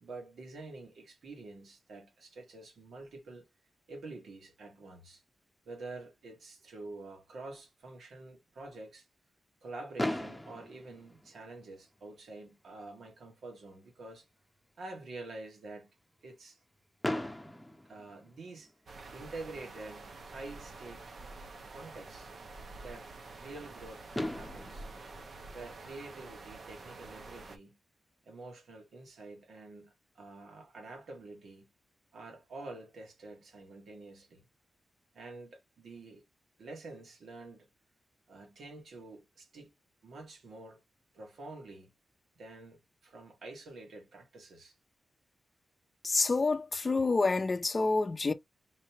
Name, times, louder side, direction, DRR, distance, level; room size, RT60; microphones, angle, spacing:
voice 1, 0.0-3.4 3.9-5.2 5.7-9.1 9.6-14.3 14.8-15.9 16.2-16.6 17.9-18.7 19.1-21.0 21.7-22.3 22.8-24.9 25.5-27.8 28.2-31.7 32.1-34.5 35.1-36.2 36.6-37.7 38.3-39.7 40.0-40.8 41.1-41.9 42.4-44.8, right 2 dB, 85° right, 1.8 m, -47 dB
Fireworks, 10.0-12.0 12.8-12.9 13.1-13.3 13.6-13.7 17.0-18.9 20.6-20.7 23.7-23.8 24.1-26.4, left 1 dB, 5° left, 0.8 m, -39 dB
sound 1, 18.9-27.6, right 3 dB, 60° right, 0.8 m, -48 dB
voice 2, 46.0-48.3, left 3 dB, 35° left, 0.5 m, -28 dB
4.0 x 3.2 x 2.9 m
cardioid pair, 90°, 0 cm